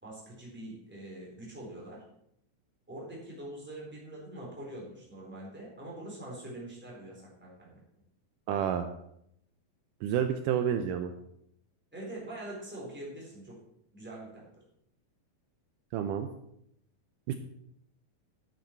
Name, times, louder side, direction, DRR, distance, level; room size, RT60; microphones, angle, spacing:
voice 1, 0.0-2.0 2.9-7.8 11.9-13.6 13.9-14.4, right 1 dB, 5° right, -5 dB, 3.4 m, -44 dB
voice 2, 8.5-8.9 10.0-11.1 15.9-16.3 17.3-17.4, right 9 dB, 85° right, 8 dB, 1.9 m, -29 dB
10.5 x 9.1 x 4.5 m, 0.75 s
omnidirectional pair, 4.4 m